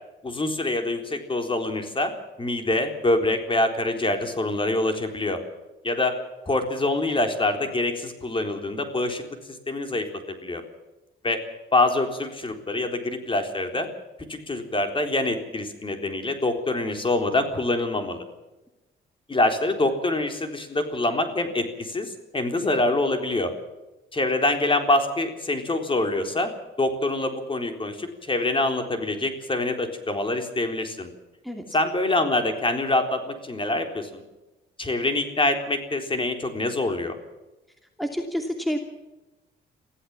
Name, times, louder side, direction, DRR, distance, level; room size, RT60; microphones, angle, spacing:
voice 1, 0.2-2.1 2.4-5.4 5.8-6.2 6.5-9.2 9.7-10.1 10.4-10.6 11.2-11.4 11.7-13.9 14.3-18.2 19.3-23.5 24.1-26.5 26.8-31.1 31.7-34.2 34.8-37.2, left 2 dB, 25° left, 6 dB, 4.0 m, -25 dB
voice 2, 38.0-38.8, equal, ahead, 4 dB, 2.7 m, -28 dB
24.0 x 16.0 x 7.3 m, 1.0 s
cardioid pair, 90°, 20 cm